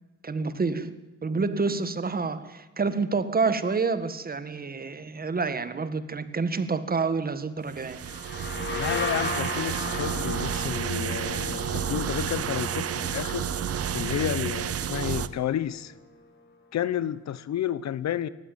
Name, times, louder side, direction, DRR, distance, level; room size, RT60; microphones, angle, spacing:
voice 1, 0.2-0.9 1.2-8.0, right 4 dB, 30° right, 12 dB, 1.8 m, -28 dB
sound 1, 7.7-15.3, right 9 dB, 50° right, 1.0 m, -31 dB
sound 2, 8.0-15.6, left 2 dB, 35° left, 4.3 m, -36 dB
voice 2, 8.7-13.5 13.9-15.9 16.7-18.3, left 11 dB, 60° left, 18 dB, 1.0 m, -31 dB
18.5 x 15.0 x 9.3 m, 1.2 s
cardioid pair, 90°, 30 cm